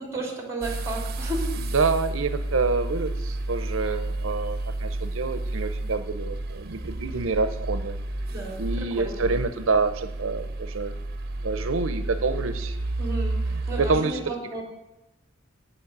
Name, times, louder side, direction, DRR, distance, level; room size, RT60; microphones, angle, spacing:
voice 1, 0.0-1.5 8.3-9.2 13.0-13.4 13.7-14.6, right 2 dB, 15° right, 1 dB, 3.2 m, -33 dB
sound 1, 0.6-14.0, right 2 dB, 50° right, 1.0 m, -31 dB
voice 2, 1.6-7.9 8.6-10.9 11.4-12.8 13.5-14.2, right 4 dB, 85° right, 10 dB, 0.7 m, -27 dB
8.9 x 7.3 x 8.0 m, 0.94 s
head